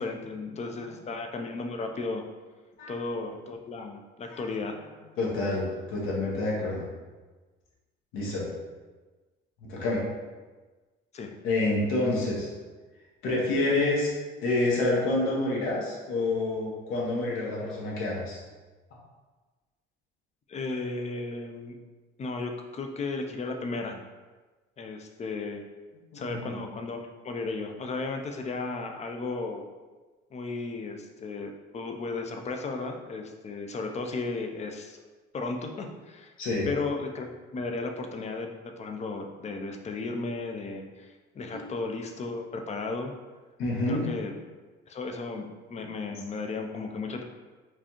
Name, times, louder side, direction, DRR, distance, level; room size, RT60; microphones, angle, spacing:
voice 1, 0.0-2.2 2.9-4.8 11.1-11.3 20.5-21.7 22.2-24.0 24.8-25.6 26.1-27.0 27.2-29.6 30.3-35.0 35.3-36.3 36.7-37.3 37.5-43.1 43.9-44.3 44.9-47.2, left 3 dB, 30° left, 4 dB, 0.5 m, -34 dB
voice 2, 5.2-6.9 8.1-8.5 9.6-10.0 11.4-12.5 13.2-14.1 14.4-18.4 26.1-26.7 36.4-36.7 41.5-41.6 43.6-44.1, left 2 dB, 75° left, -4 dB, 1.3 m, -28 dB
4.7 x 2.4 x 2.9 m, 1.3 s
supercardioid pair, 85°, 21 cm